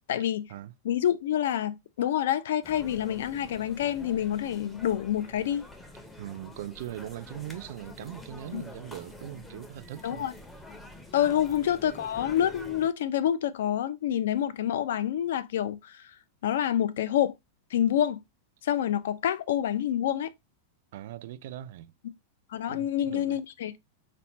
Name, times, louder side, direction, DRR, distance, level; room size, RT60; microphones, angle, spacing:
voice 1, 0.1-0.5 0.8-5.6 8.5-8.6 10.0-10.3 11.1-16.2 16.4-17.3 17.7-18.2 18.6-20.3 22.5-23.8, left 10 dB, 75° left, 0.4 m, -27 dB
sound 1, 2.6-12.9, left 1 dB, 5° left, 0.5 m, -47 dB
voice 2, 6.2-10.3 11.4-11.5 20.9-21.9 22.7-23.4, right 13 dB, 60° right, 0.3 m, -40 dB
4.1 x 2.1 x 4.3 m
supercardioid pair, 165°, 0 cm